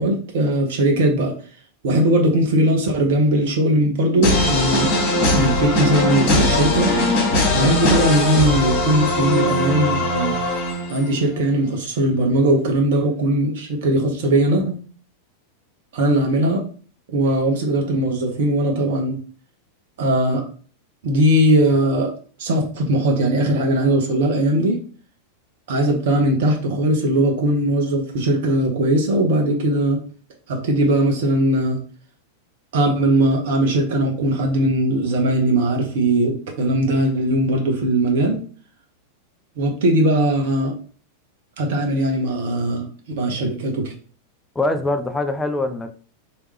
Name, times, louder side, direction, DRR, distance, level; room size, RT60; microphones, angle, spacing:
voice 1, 0.0-1.3 1.8-4.9 5.3-7.0 7.5-10.4 10.9-14.8 15.9-16.6 17.1-19.2 20.0-20.4 21.0-22.1 22.4-24.8 25.7-30.0 30.5-31.8 32.7-38.4 39.6-40.7 41.6-42.9 43.2-43.9, right 1 dB, 55° right, 2 dB, 0.9 m, -19 dB
sound 1, 4.2-11.2, left 2 dB, 45° left, 1.5 m, -20 dB
voice 2, 44.6-46.0, left 2 dB, 10° left, 7 dB, 0.5 m, -23 dB
3.2 x 2.9 x 3.4 m, 0.40 s
figure-of-eight pair, 90°, 0 cm